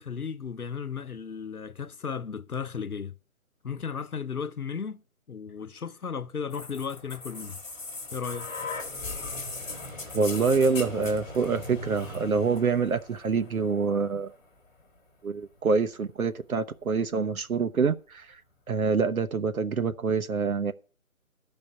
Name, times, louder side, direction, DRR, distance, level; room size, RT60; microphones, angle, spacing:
voice 1, 0.0-3.1 3.6-5.0 5.3-7.6 8.1-8.5, left 6 dB, 90° left, 1.0 m, -35 dB
sound 1, 6.5-14.4 15.4-15.5, left 3 dB, 5° left, 0.7 m, -39 dB
voice 2, 10.1-14.3 15.2-18.4 18.7-20.7, right 5 dB, 75° right, 0.9 m, -26 dB
13.5 x 5.2 x 7.4 m
figure-of-eight pair, 155°, 43 cm